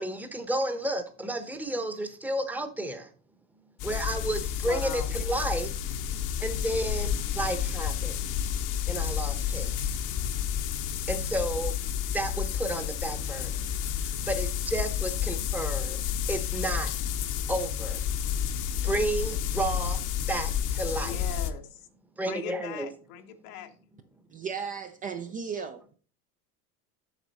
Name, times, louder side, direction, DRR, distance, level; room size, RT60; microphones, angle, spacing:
voice 1, 0.0-3.1 3.8-5.7 6.4-8.1 8.9-10.0 11.1-11.8 12.1-13.7 14.0-16.0 16.3-16.9 17.5-18.0 18.8-20.0 20.3-21.3 22.2-22.9, right 1 dB, 5° right, 0.8 m, -32 dB
sound 1, 3.8-21.5, left 9 dB, 40° left, 0.8 m, -30 dB
voice 2, 4.6-5.1 21.0-21.8 22.3-23.7, left 9 dB, 75° left, 1.1 m, -40 dB
voice 3, 24.3-25.9, right 6 dB, 20° right, 0.3 m, -35 dB
8.1 x 6.0 x 4.0 m
supercardioid pair, 115°, 45 cm